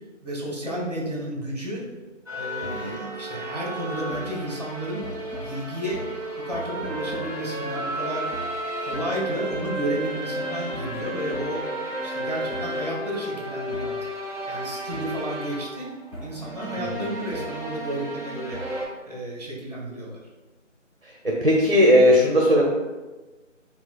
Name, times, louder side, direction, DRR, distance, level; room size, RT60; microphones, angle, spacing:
voice 1, 0.2-1.8 2.3-5.1 5.4-6.0 6.4-8.3 8.8-11.6 12.0-14.0 14.5-15.9 16.2-18.6 19.0-20.2, right 1 dB, 30° right, -4 dB, 1.2 m, -32 dB
sound 1, 2.3-18.8, right 1 dB, 25° left, 1.3 m, -33 dB
voice 2, 2.6-3.0 16.8-17.1 21.4-22.7, equal, 50° right, -2 dB, 0.6 m, -18 dB
7.0 x 2.4 x 2.3 m, 1.2 s
figure-of-eight pair, 170°, 38 cm